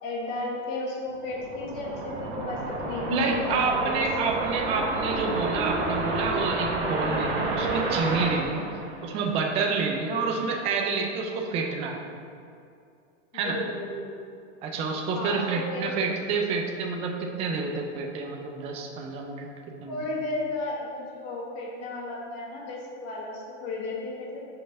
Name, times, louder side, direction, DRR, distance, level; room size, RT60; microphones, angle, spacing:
voice 1, 0.0-3.6 4.2-4.3 10.1-10.3 13.3-14.1 15.1-15.9 19.9-24.4, left 2 dB, 40° left, -2 dB, 1.3 m, -34 dB
sound 1, 1.1-9.4, right 2 dB, 35° right, 1.2 m, -30 dB
voice 2, 3.1-8.7 9.0-12.0 13.3-13.6 14.6-19.5 19.8-20.0, right 4 dB, 15° right, 1 dB, 0.4 m, -28 dB
5.4 x 3.3 x 5.4 m, 2.4 s
hypercardioid pair, 130°, 37 cm